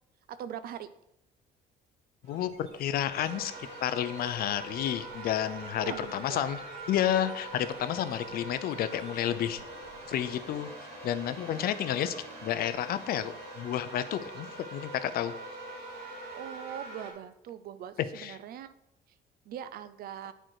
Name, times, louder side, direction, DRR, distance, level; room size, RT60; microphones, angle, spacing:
voice 1, 0.3-0.9 5.8-6.5 16.3-18.7 19.5-20.3, right 9 dB, 60° right, 12 dB, 0.6 m, -41 dB
sound 1, 2.2-10.6, right 1 dB, 40° right, 2.3 m, -56 dB
voice 2, 2.8-3.5 3.8-6.6 6.9-9.6 10.1-10.7 11.0-12.1 12.4-15.3 18.2-18.4, left 11 dB, 65° left, 12 dB, 0.6 m, -31 dB
sound 2, 3.1-17.1, right 2 dB, 80° right, 2.6 m, -43 dB
8.9 x 4.5 x 4.6 m, 0.82 s
cardioid pair, 110°, 17 cm